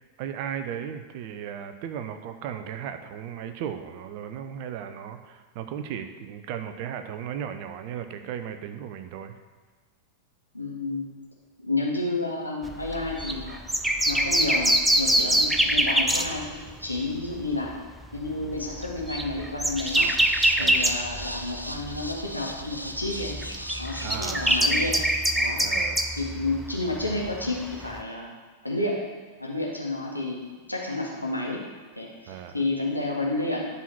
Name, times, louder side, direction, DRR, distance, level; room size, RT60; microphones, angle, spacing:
voice 1, 0.2-9.4 20.6-20.8 24.0-24.6 25.6-26.1 32.3-32.6, right 9 dB, 45° right, 8 dB, 0.7 m, -36 dB
voice 2, 10.5-11.1 11.6-13.6 14.1-17.7 18.1-20.1 20.6-23.4 23.8-25.0 25.3-25.6 26.2-28.3 28.6-29.0 29.4-30.4 30.7-31.6 32.0-33.6, left 2 dB, 85° left, -3 dB, 1.8 m, -30 dB
sound 1, 12.6-17.0 17.3-17.5 18.0-22.4 22.6-28.0, right 1 dB, 5° right, 0.6 m, -25 dB
sound 2, 19.8-25.0, equal, 90° right, 0.5 m, -38 dB
11.0 x 4.2 x 6.0 m, 1.4 s
figure-of-eight pair, 90°, 0 cm